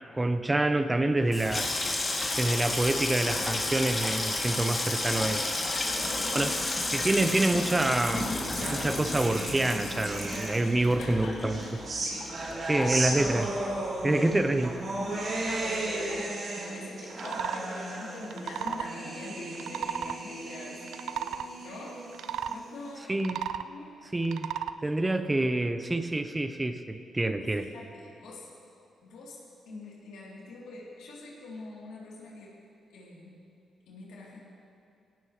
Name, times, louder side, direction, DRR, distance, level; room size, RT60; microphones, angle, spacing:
voice 1, 0.1-1.7 2.4-5.4 6.3-6.5 6.9-11.8 12.7-13.5 14.0-14.8 23.1-23.4 24.1-24.5 24.8-27.7, right 2 dB, 20° right, 9 dB, 1.0 m, -27 dB
Water tap faucet / Sink (filling or washing), 1.2-14.0 14.3-15.0 15.2-15.6, left 2 dB, 30° left, 2.9 m, -32 dB
voice 2, 5.7-6.4 10.6-11.4 11.9-12.1 14.1-14.3 15.0-20.8 21.6-22.0 22.5-23.2 23.6-24.0 27.5-28.5 29.0-29.4 29.7-32.5 32.9-33.5 33.9-34.4, left 2 dB, 80° left, -5 dB, 3.6 m, -43 dB
sound 1, 8.1-10.9 11.4-22.9, right 2 dB, 55° right, 4.3 m, -35 dB
sound 2, 17.1-17.6 18.2-18.9 19.5-20.2 20.8-21.5 22.1-22.6 23.1-23.7 24.2-24.8, right 9 dB, 75° right, 0.4 m, -34 dB
18.5 x 16.5 x 3.3 m, 2.6 s
supercardioid pair, 50°, 0 cm